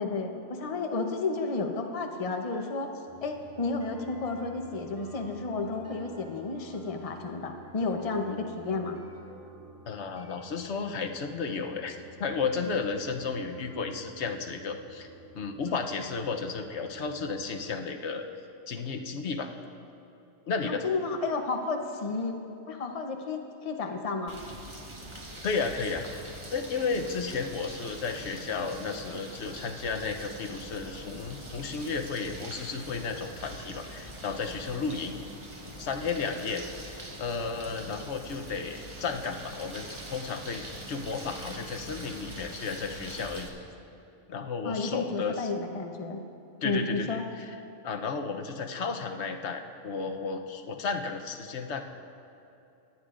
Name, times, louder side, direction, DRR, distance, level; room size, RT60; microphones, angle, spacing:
voice 1, 0.0-2.9 3.2-9.0 20.6-22.4 22.7-24.4 44.6-46.2 46.6-47.2, left 3 dB, 35° left, 4 dB, 0.7 m, -32 dB
sound 1, 3.1-17.7, right 2 dB, 85° right, 2.6 m, -51 dB
voice 2, 9.9-15.1 15.3-18.3 18.7-19.5 20.5-20.8 25.4-26.2 26.5-35.2 35.8-36.6 36.9-43.5 44.3-45.5 46.6-47.5 47.8-51.8, left 5 dB, 65° left, 5 dB, 1.0 m, -33 dB
sound 2, 24.3-43.5, right 1 dB, 25° right, 1.1 m, -43 dB
24.0 x 9.9 x 2.5 m, 2.8 s
omnidirectional pair, 1.3 m